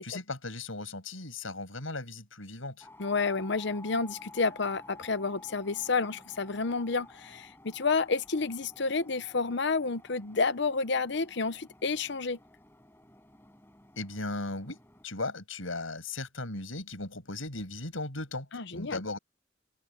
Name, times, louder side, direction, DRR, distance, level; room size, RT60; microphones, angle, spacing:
voice 1, 0.0-2.9 14.0-14.8 15.0-19.2, left 2 dB, 90° left, 6.7 m, -37 dB
sound 1, 2.8-15.1, left 2 dB, 10° left, 6.6 m, -53 dB
voice 2, 3.0-12.4 18.5-19.0, left 4 dB, 60° left, 0.9 m, -30 dB
open air
head